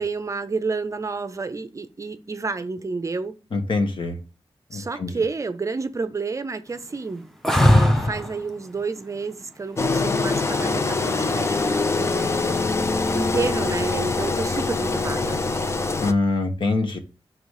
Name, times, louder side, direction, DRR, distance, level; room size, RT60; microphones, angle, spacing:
voice 1, 0.0-3.3 4.7-7.3 7.5-12.5 13.1-15.4, right 4 dB, 30° right, 0.5 m, -30 dB
voice 2, 3.5-4.2 4.7-5.1 16.0-17.0, left 3 dB, 60° left, 1.2 m, -24 dB
sound 1, 7.4-8.4 11.0-11.6, left 1 dB, 5° left, 0.7 m, -18 dB
Engine, 9.8-16.1, left 3 dB, 30° left, 0.4 m, -24 dB
6.1 x 3.9 x 4.8 m
wide cardioid pair, 160°, 10 cm